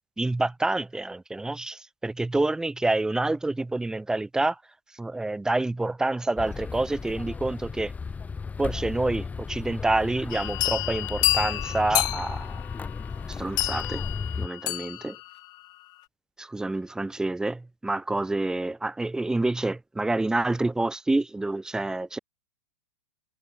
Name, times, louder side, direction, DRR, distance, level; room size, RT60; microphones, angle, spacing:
voice 1, 0.2-4.6 4.9-7.9 8.6-12.6 13.3-14.0 14.4-15.2 16.4-22.2, right 2 dB, 5° right, 3.5 m, -28 dB
sound 1, 6.4-14.5, left 5 dB, 10° left, 3.9 m, -35 dB
sound 2, 10.3-15.4, left 17 dB, 35° left, 1.6 m, -29 dB
supercardioid pair, 145°, 12 cm